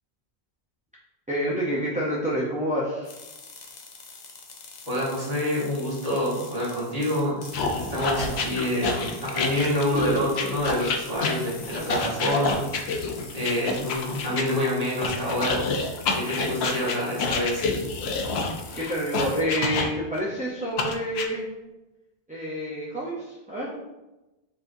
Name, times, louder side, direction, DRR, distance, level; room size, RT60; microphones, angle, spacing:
voice 1, 1.3-3.2 18.7-21.5 22.3-23.9, equal, 10° right, -6 dB, 0.5 m, -28 dB
sound 1, 3.0-19.4, left 4 dB, 50° left, 0.7 m, -45 dB
voice 2, 4.9-7.5 7.8-12.9 13.3-15.6 16.1-17.7, left 1 dB, 40° right, -6 dB, 1.4 m, -27 dB
sound 2, 7.5-14.5 15.0-20.2 20.8-21.3, left 4 dB, 85° left, 0.9 m, -28 dB
4.7 x 4.0 x 2.6 m, 1.0 s
omnidirectional pair, 1.0 m